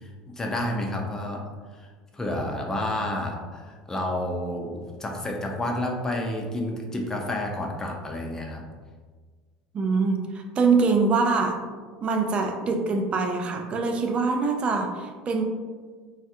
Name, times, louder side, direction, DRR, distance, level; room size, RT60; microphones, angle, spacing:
voice 1, 0.0-8.6, left 1 dB, 15° left, 1 dB, 0.5 m, -30 dB
voice 2, 9.7-11.6 12.0-15.4, right 4 dB, 35° right, 4 dB, 0.4 m, -24 dB
3.1 x 2.4 x 2.8 m, 1.5 s
supercardioid pair, 115°, 3 cm